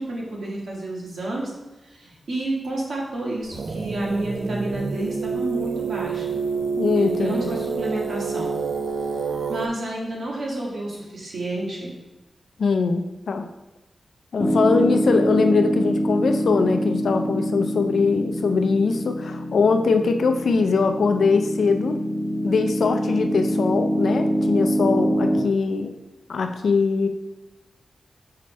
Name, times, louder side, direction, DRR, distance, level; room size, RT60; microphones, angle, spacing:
voice 1, 0.0-1.5 1.8-6.4 7.0-8.6 9.1-11.9, right 1 dB, 70° right, -3 dB, 1.7 m, -30 dB
sound 1, 3.5-9.7, right 5 dB, 50° right, 0.4 m, -27 dB
voice 2, 6.8-7.5 12.6-13.5 14.3-22.0 22.4-25.9 26.3-27.1, left 4 dB, 75° left, 7 dB, 0.5 m, -22 dB
Piano, 14.4-25.4, equal, 15° left, 0.8 m, -24 dB
5.6 x 3.3 x 5.2 m, 1.1 s
wide cardioid pair, 170°, 0 cm